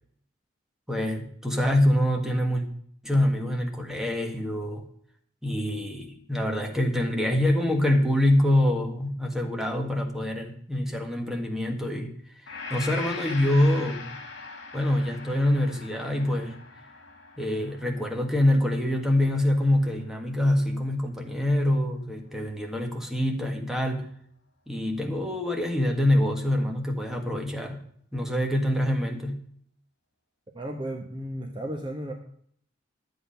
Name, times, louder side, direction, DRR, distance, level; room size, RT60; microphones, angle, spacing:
voice 1, 0.9-2.6 3.0-4.8 5.4-12.2 12.4-14.1 14.7-16.6 17.4-24.1 24.7-27.8 28.1-29.4, left 1 dB, ahead, 2 dB, 1.6 m, -25 dB
Gong, 12.5-20.5, left 4 dB, 65° left, 2.6 m, -42 dB
voice 2, 30.5-32.1, right 1 dB, 25° right, 3 dB, 1.1 m, -34 dB
11.0 x 8.0 x 5.6 m, 0.62 s
head